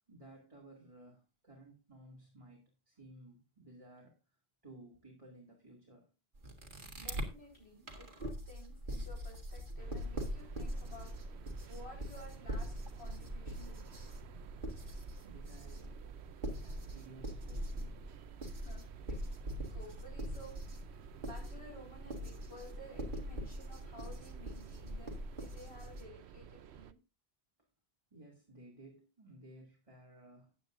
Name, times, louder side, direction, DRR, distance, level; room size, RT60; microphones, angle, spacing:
voice 1, 0.1-6.1 15.2-15.9 16.6-18.2 28.1-30.5, right 1 dB, 30° right, -2 dB, 2.5 m, -57 dB
sound 1, 6.3-7.3 7.9-26.0, equal, 50° right, 2.1 m, -42 dB
voice 2, 7.0-14.0 18.4-18.8 19.1-19.2 19.7-27.0, left 1 dB, 80° left, -1 dB, 4.7 m, -54 dB
sound 2, 9.8-26.9, right 8 dB, 85° right, 0.9 m, -53 dB
14.5 x 8.6 x 2.5 m, 0.29 s
omnidirectional pair, 1.1 m